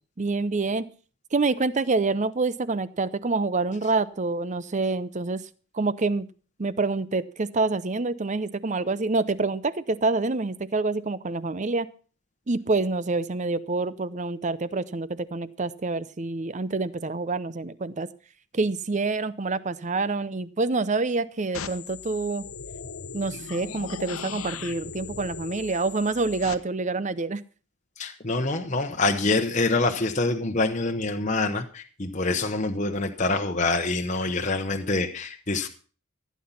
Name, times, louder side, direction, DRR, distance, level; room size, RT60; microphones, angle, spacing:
voice 1, 0.2-0.9 1.3-5.4 5.7-6.3 6.6-11.9 12.5-18.1 18.5-22.5 23.1-27.4, right 3 dB, 35° right, 17 dB, 0.6 m, -27 dB
sound 1, 21.5-26.5, left 6 dB, 75° left, 1.0 m, -38 dB
voice 2, 28.0-35.7, left 3 dB, 35° left, 4 dB, 1.0 m, -26 dB
15.5 x 9.5 x 5.7 m, 0.40 s
head